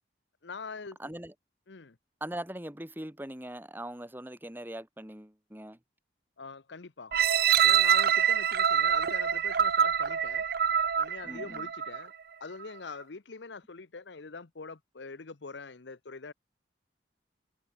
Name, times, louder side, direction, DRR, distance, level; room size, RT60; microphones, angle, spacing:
voice 1, 0.4-1.0 1.7-2.0 6.4-7.2 7.6-10.4 11.0-12.1 12.4-16.3, left 4 dB, 75° left, 0.9 m, -43 dB
voice 2, 1.0-1.3 2.2-5.8 11.2-11.7, right 1 dB, 10° right, 2.2 m, -41 dB
sound 1, 7.1-12.1 12.6-12.7, right 8 dB, 55° right, 0.5 m, -25 dB
head